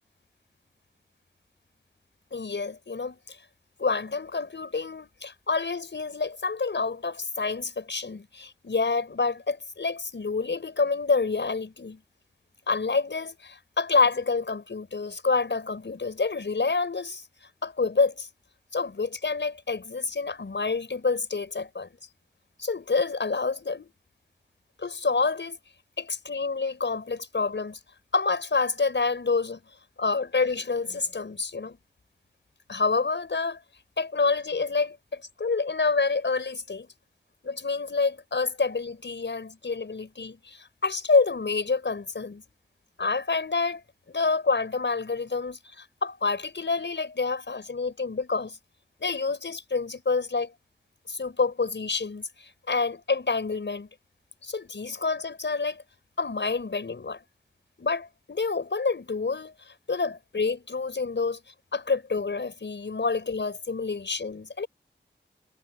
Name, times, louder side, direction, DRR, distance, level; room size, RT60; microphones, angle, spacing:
voice 1, 2.3-3.4 3.8-12.0 12.7-17.2 17.6-18.3 18.7-21.9 22.6-23.9 24.8-25.6 26.0-27.8 28.1-29.6 30.0-31.8 32.7-33.6 34.0-36.9 37.4-42.4 43.0-43.8 44.1-48.6 49.0-50.5 51.1-53.9 54.4-55.8 56.2-57.2 57.8-61.4 61.7-64.7, left 4 dB, 70° left, 5.9 m, -28 dB
wide cardioid pair, 60°, 19 cm